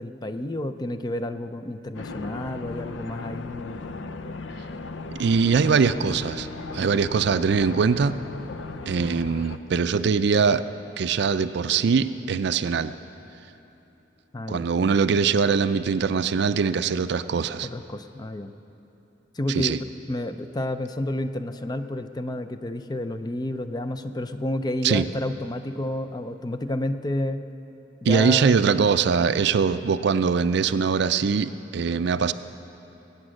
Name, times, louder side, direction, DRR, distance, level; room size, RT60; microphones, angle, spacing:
voice 1, 0.0-3.8 14.3-14.6 17.6-18.5 19.3-19.8 20.1-27.4 28.0-28.6, left 1 dB, 20° left, 10 dB, 0.5 m, -30 dB
sound 1, 1.9-9.6, left 3 dB, 85° left, 0.6 m, -37 dB
voice 2, 5.2-6.5 6.7-8.2 8.9-10.6 11.0-12.9 14.5-17.7 19.5-19.8 24.8-25.0 28.0-32.3, right 5 dB, 65° right, 13 dB, 0.4 m, -22 dB
Bass guitar, 5.4-12.6, left 1 dB, 15° right, 1.3 m, -48 dB
20.0 x 8.8 x 6.4 m, 3.0 s
head